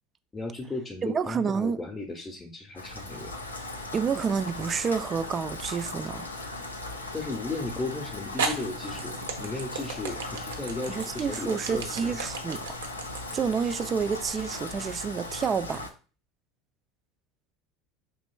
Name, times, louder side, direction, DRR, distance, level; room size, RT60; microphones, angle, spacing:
voice 1, 0.3-3.3 7.1-12.2, left 2 dB, 20° left, 0.7 m, -35 dB
voice 2, 1.0-1.8 3.9-6.3 10.9-12.7 13.3-15.9, right 6 dB, 30° right, 0.3 m, -29 dB
Rain, 2.8-15.9, left 2 dB, 90° left, 0.4 m, -38 dB
sound 1, 4.3-4.9 5.6-5.7 7.6-7.7 8.4-14.6, right 4 dB, 75° right, 0.6 m, -35 dB
5.1 x 3.0 x 2.3 m
figure-of-eight pair, 75°, 0 cm